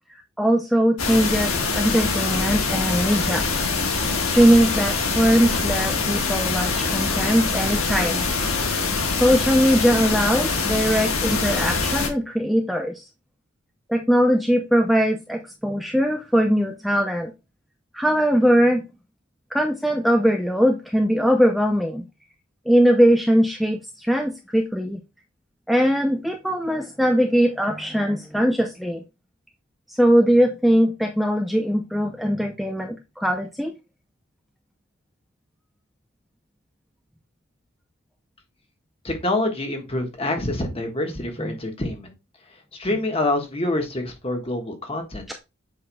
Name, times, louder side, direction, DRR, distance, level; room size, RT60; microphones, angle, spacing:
voice 1, 0.4-3.5 4.3-8.3 9.1-13.0 13.9-17.3 17.9-18.8 19.5-22.1 22.7-25.0 25.7-29.0 29.9-33.7 41.4-41.5 45.3-45.4, equal, ahead, 0.4 m, -20 dB
sound 1, 1.0-12.1, left 4 dB, 90° left, 1.5 m, -24 dB
voice 2, 39.0-42.1 42.8-45.2, left 2 dB, 25° left, 1.4 m, -26 dB
7.6 x 5.8 x 2.2 m
head